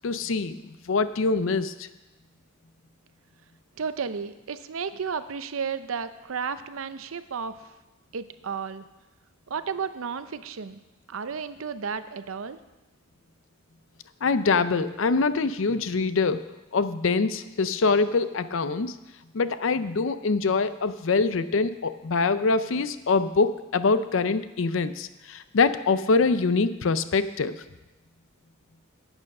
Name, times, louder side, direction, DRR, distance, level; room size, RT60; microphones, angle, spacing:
voice 1, 0.0-1.9 14.2-16.5 16.7-18.9 19.3-27.6, left 4 dB, 70° left, 13 dB, 0.6 m, -24 dB
voice 2, 3.8-7.7 8.1-8.9 9.5-10.8 11.1-12.6, right 6 dB, 85° right, 12 dB, 0.6 m, -33 dB
12.0 x 9.0 x 5.4 m, 1.0 s
head